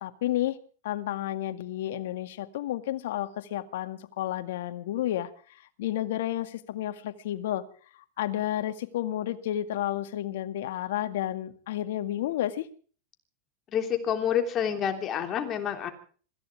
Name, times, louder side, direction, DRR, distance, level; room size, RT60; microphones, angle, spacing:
voice 1, 0.0-0.6 0.8-7.6 8.2-12.7, left 12 dB, 80° left, 8 dB, 2.0 m, -31 dB
voice 2, 13.7-15.9, left 8 dB, 30° left, 5 dB, 3.3 m, -28 dB
26.0 x 15.5 x 3.5 m, 0.42 s
supercardioid pair, 140°, 0 cm